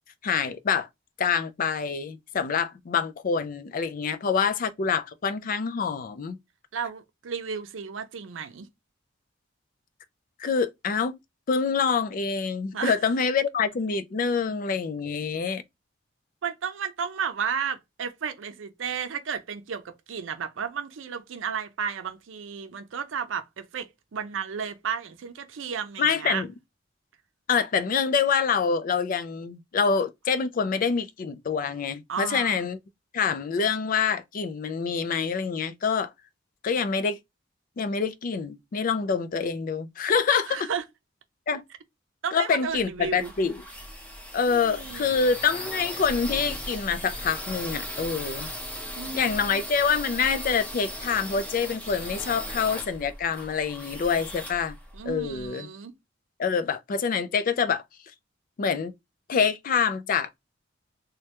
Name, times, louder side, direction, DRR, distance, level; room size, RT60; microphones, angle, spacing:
voice 1, 0.2-0.9 1.2-6.4 10.4-11.2 11.5-15.6 26.0-26.5 27.5-32.8 33.1-36.1 36.6-37.2 37.8-40.7 41.5-41.6 42.3-43.6 44.3-48.5 49.1-54.8 55.1-55.7 56.4-57.8 58.6-58.9 59.3-60.3, left 6 dB, 45° left, 0.4 m, -26 dB
voice 2, 6.7-8.7 12.7-13.0 16.4-26.4 32.1-32.6 40.5-40.8 42.2-43.3 44.5-45.1 49.0-49.6 54.9-56.0, right 7 dB, 85° right, 0.5 m, -33 dB
sound 1, 42.7-55.5, equal, 5° left, 0.7 m, -37 dB
3.2 x 2.2 x 2.8 m
head